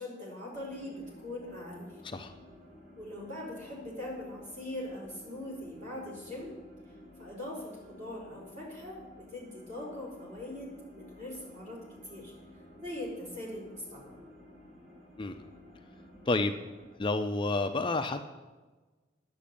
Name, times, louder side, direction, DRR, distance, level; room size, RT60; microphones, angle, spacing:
voice 1, 0.0-1.9 2.9-6.5 7.2-11.8 12.0-12.3 12.8-14.1, left 1 dB, 45° right, -4 dB, 4.9 m, -41 dB
sound 1, 0.5-17.0, left 1 dB, 75° right, 3.6 m, -53 dB
voice 2, 15.2-15.5 16.3-16.6 17.0-18.3, left 2 dB, 25° left, 7 dB, 0.5 m, -30 dB
10.0 x 7.2 x 8.5 m, 1.2 s
head